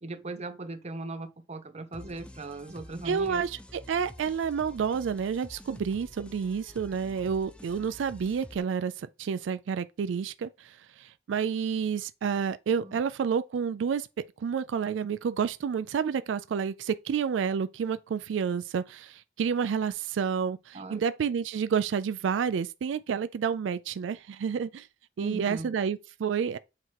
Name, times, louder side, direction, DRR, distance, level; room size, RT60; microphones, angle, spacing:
voice 1, 0.0-3.5 12.8-13.0 20.7-21.0 25.2-25.7, right 2 dB, 35° right, 0.8 m, -38 dB
sound 1, 1.9-8.6, left 1 dB, 5° left, 0.4 m, -48 dB
voice 2, 3.0-14.1 14.4-24.9 25.2-26.6, right 6 dB, 90° right, 0.3 m, -30 dB
7.7 x 2.9 x 4.6 m
head